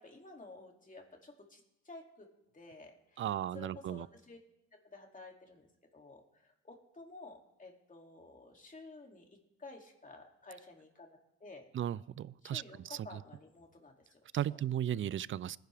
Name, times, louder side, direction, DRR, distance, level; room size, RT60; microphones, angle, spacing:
voice 1, 0.0-2.3 2.5-3.3 3.5-4.4 4.7-9.3 9.6-11.7 12.4-14.2 14.5-14.6, left 3 dB, 25° left, 1 dB, 2.7 m, -53 dB
voice 2, 3.2-4.1 11.7-13.2 14.3-15.6, right 11 dB, 45° right, 21 dB, 0.4 m, -36 dB
20.5 x 10.5 x 3.5 m, 0.84 s
cardioid pair, 90°, 30 cm